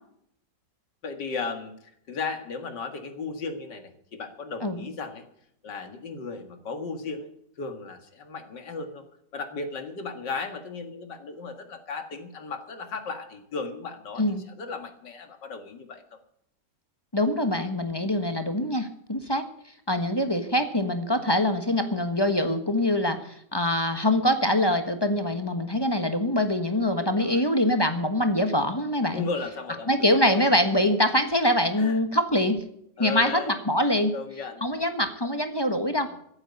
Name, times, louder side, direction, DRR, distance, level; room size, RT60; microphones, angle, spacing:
voice 1, 1.0-1.7 2.1-5.2 5.6-7.3 7.6-9.0 9.3-16.2 27.0-27.4 29.1-30.4 31.8-32.0 33.0-33.6 34.1-34.7 36.1-36.2, left 4 dB, 90° left, 7 dB, 2.6 m, -35 dB
voice 2, 17.1-19.4 19.9-29.3 29.9-32.6 33.0-34.1 34.6-36.2, left 1 dB, 15° left, 7 dB, 1.2 m, -24 dB
15.0 x 9.0 x 8.3 m, 0.71 s
omnidirectional pair, 1.8 m